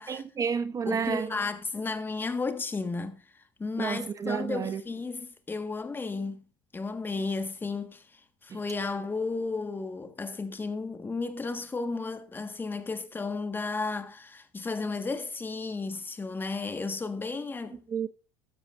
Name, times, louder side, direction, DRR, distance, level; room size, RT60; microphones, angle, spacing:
voice 1, 0.1-1.3 3.8-4.8 8.5-8.6 17.9-18.1, right 6 dB, 30° right, 0.8 m, -31 dB
voice 2, 0.8-6.4 6.7-17.8, left 3 dB, 20° left, 1.6 m, -33 dB
13.0 x 13.0 x 2.5 m
hypercardioid pair, 85°, 11 cm